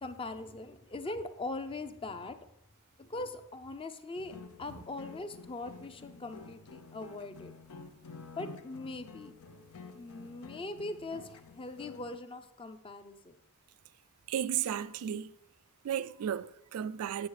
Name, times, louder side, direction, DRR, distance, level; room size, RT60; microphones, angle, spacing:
voice 1, 0.0-2.4 3.0-7.5 8.4-9.4 9.9-13.4, left 2 dB, 25° left, 0.5 m, -41 dB
sound 1, 4.2-12.2, left 4 dB, 90° left, 0.7 m, -50 dB
voice 2, 14.3-15.3 15.8-17.3, right 9 dB, 75° right, 0.3 m, -34 dB
8.4 x 7.1 x 4.8 m
head